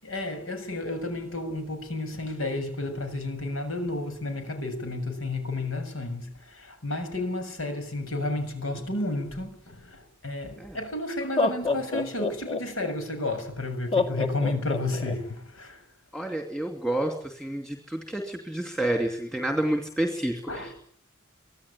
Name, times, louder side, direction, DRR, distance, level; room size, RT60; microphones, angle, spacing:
voice 1, 0.0-15.8 20.5-20.7, left 2 dB, 70° left, 7.2 m, -32 dB
Laughter, 10.5-10.6 11.2-12.9 13.9-15.1, left 4 dB, 25° left, 2.0 m, -27 dB
voice 2, 16.1-20.8, right 1 dB, 5° left, 2.7 m, -29 dB
25.5 x 17.5 x 10.0 m
head